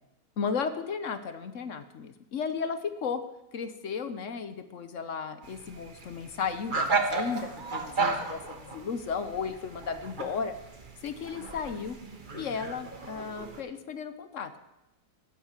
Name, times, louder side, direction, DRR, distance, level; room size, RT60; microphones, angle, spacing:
voice 1, 0.4-3.2 3.5-10.5 11.0-12.0 12.3-14.6, left 6 dB, 55° left, 11 dB, 0.9 m, -34 dB
sound 1, 5.4-13.6, right 4 dB, 30° right, 1.3 m, -34 dB
14.5 x 9.0 x 7.3 m, 0.95 s
omnidirectional pair, 1.9 m